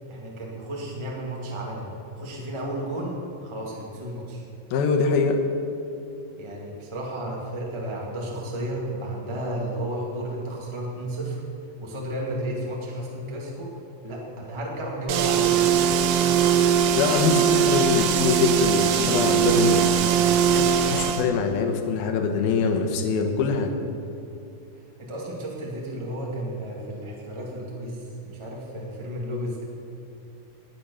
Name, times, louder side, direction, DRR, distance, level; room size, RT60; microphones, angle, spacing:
voice 1, 0.1-4.4 6.4-11.4 11.8-13.7 14.0-15.6 16.2-16.5 25.0-29.6, right 1 dB, 20° right, -2 dB, 0.6 m, -33 dB
voice 2, 4.7-5.4 17.0-19.8 20.5-23.8, left 5 dB, 75° left, 5 dB, 2.8 m, -24 dB
sound 1, 15.1-21.3, right 8 dB, 80° right, 2.8 m, -21 dB
19.5 x 7.6 x 7.0 m, 2.8 s
omnidirectional pair, 4.7 m